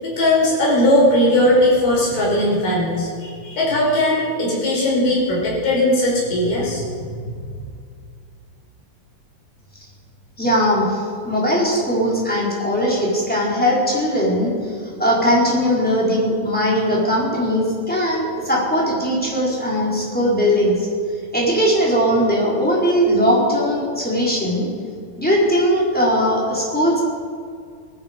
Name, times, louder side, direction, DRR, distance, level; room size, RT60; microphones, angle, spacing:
voice 1, 0.0-7.3, left 1 dB, 65° left, -4 dB, 6.6 m, -18 dB
voice 2, 10.4-14.5 15.0-20.7 21.3-24.7 25.2-27.0, equal, ahead, -5 dB, 3.8 m, -19 dB
19.0 x 14.5 x 5.3 m, 2.2 s
omnidirectional pair, 4.2 m